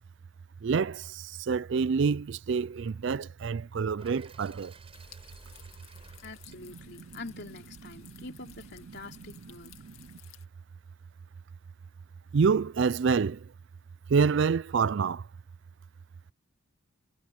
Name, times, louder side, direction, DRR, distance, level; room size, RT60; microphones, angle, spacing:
voice 1, 0.6-4.7 8.1-8.2 9.8-10.2 12.3-13.5 14.1-15.3, right 5 dB, 60° right, 0.4 m, -27 dB
sound 1, 4.0-8.0, right 3 dB, 25° right, 5.4 m, -55 dB
sound 2, 4.9-10.5, left 12 dB, 85° left, 2.3 m, -56 dB
voice 2, 6.2-9.8, left 3 dB, 50° left, 3.6 m, -45 dB
head